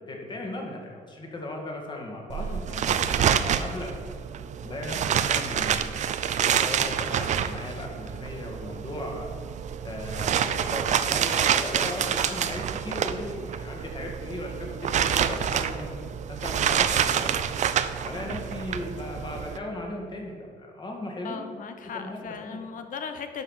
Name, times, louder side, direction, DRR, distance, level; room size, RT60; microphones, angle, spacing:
voice 1, 0.0-4.0 4.6-6.1 6.4-9.3 9.8-17.5 18.0-21.4 21.9-22.6, left 1 dB, 30° left, 0 dB, 2.0 m, -37 dB
sound 1, 2.3-19.6, right 8 dB, 50° right, 0.5 m, -27 dB
voice 2, 2.4-2.9 21.2-23.4, left 6 dB, 60° left, 7 dB, 1.0 m, -38 dB
11.5 x 5.0 x 5.6 m, 2.2 s
cardioid pair, 115°, 16 cm